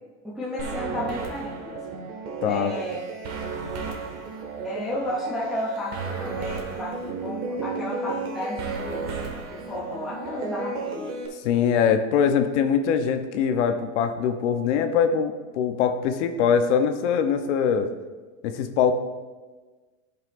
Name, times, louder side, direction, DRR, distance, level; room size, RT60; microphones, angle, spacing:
voice 1, 0.2-2.0 2.4-3.0 4.6-9.1 9.5-11.2, left 1 dB, ahead, -8 dB, 0.3 m, -33 dB
sound 1, 0.6-11.3, right 4 dB, 55° right, 1.7 m, -33 dB
voice 2, 2.4-2.7 11.4-17.9 18.4-18.9, left 7 dB, 60° left, 8 dB, 0.8 m, -22 dB
15.0 x 5.7 x 2.5 m, 1.3 s
supercardioid pair, 170°, 40 cm